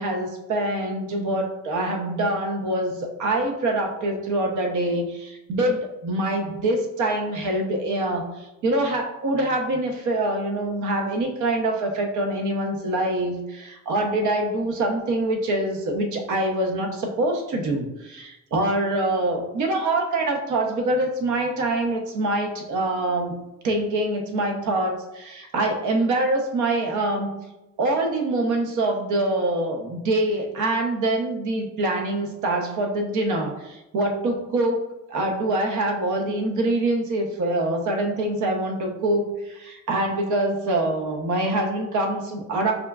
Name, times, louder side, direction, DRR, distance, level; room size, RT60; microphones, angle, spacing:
voice 1, 0.0-23.3 23.6-27.4 27.8-34.8 35.1-42.7, right 1 dB, 75° right, 3 dB, 0.7 m, -25 dB
5.0 x 2.3 x 2.3 m, 0.95 s
cardioid pair, 90°, 30 cm